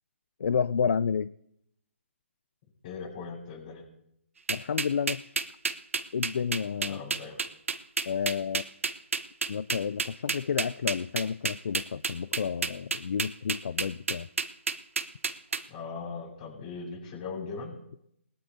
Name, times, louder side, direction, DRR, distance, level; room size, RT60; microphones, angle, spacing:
voice 1, 0.4-1.3 4.5-5.4 6.1-7.0 8.1-8.6 9.5-14.3, left 6 dB, 70° left, 16 dB, 0.4 m, -30 dB
voice 2, 2.8-3.8 6.8-7.4 15.7-17.7, left 4 dB, 40° left, 0 dB, 6.7 m, -39 dB
sound 1, 4.5-15.6, right 5 dB, 85° right, 1.0 m, -30 dB
21.5 x 13.0 x 2.8 m, 0.76 s
hypercardioid pair, 150°, 7 cm